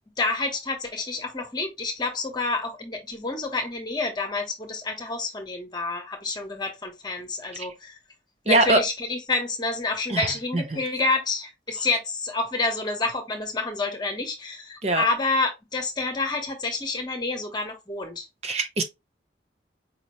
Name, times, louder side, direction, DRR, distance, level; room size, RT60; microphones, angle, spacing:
voice 1, 0.2-7.9 8.4-18.3, left 3 dB, 25° left, 1.0 m, -28 dB
voice 2, 8.5-8.8 10.1-10.3 10.5-10.8 14.8-15.0 18.4-18.8, right 2 dB, 35° right, 0.5 m, -22 dB
5.1 x 2.8 x 3.0 m
head